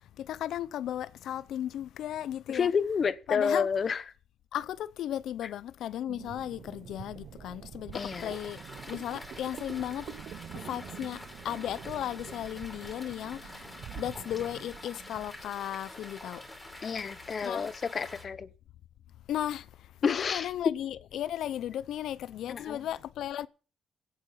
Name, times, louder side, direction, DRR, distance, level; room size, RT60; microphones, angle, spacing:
voice 1, 0.2-2.7 3.3-3.7 4.5-8.6 8.9-10.1 10.5-16.4 17.4-17.7 19.3-19.7 20.1-23.5, left 11 dB, 75° left, 0.6 m, -35 dB
voice 2, 2.5-4.0 7.9-8.3 16.8-18.5 20.0-20.8 22.5-22.9, left 6 dB, 45° left, 1.0 m, -29 dB
sound 1, 6.1-15.5, right 9 dB, 65° right, 0.7 m, -46 dB
sound 2, 7.9-18.2, left 1 dB, 10° left, 4.4 m, -47 dB
16.5 x 8.7 x 5.7 m
cardioid pair, 90°, 0 cm